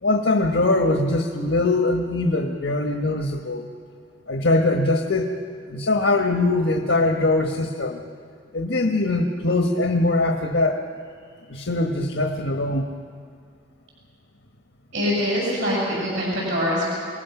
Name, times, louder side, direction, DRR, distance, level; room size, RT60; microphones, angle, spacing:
voice 1, 0.0-3.6 4.3-5.3 5.7-8.0 8.5-10.8 11.5-12.9, left 2 dB, 80° left, 3 dB, 1.3 m, -22 dB
voice 2, 14.9-16.9, equal, 70° right, -5 dB, 6.4 m, -24 dB
27.5 x 19.5 x 6.0 m, 2.2 s
head